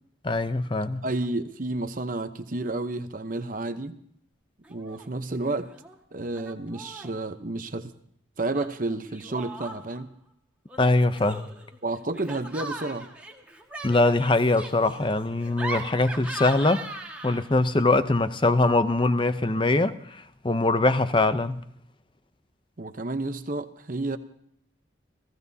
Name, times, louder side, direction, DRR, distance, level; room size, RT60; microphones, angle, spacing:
voice 1, 0.2-1.0 10.8-11.5 13.8-16.9 17.2-21.6, left 2 dB, 25° left, 0.6 m, -23 dB
voice 2, 1.0-4.0 4.7-5.7 6.1-7.9 8.4-10.1 11.8-13.1 22.8-24.2, right 2 dB, 45° right, 0.8 m, -31 dB
Laughter, 4.6-5.1 5.3-6.0 6.4-7.2 8.5-10.0 10.7-17.6, right 2 dB, 5° right, 1.7 m, -39 dB
29.5 x 16.0 x 2.8 m
head